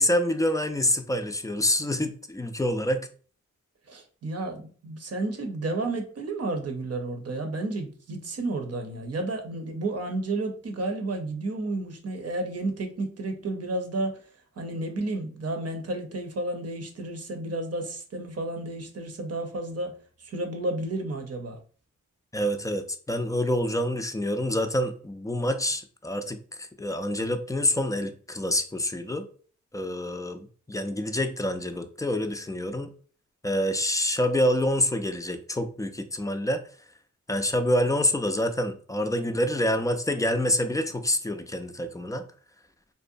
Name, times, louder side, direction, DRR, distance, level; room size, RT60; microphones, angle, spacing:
voice 1, 0.0-3.1 22.3-29.2 29.7-32.9 33.4-36.6 37.3-42.2, left 1 dB, 10° left, 7 dB, 0.4 m, -27 dB
voice 2, 3.9-14.2 14.6-19.9 20.2-21.6, right 2 dB, 50° right, 5 dB, 0.7 m, -31 dB
2.6 x 2.1 x 2.6 m, 0.42 s
cardioid pair, 50°, 31 cm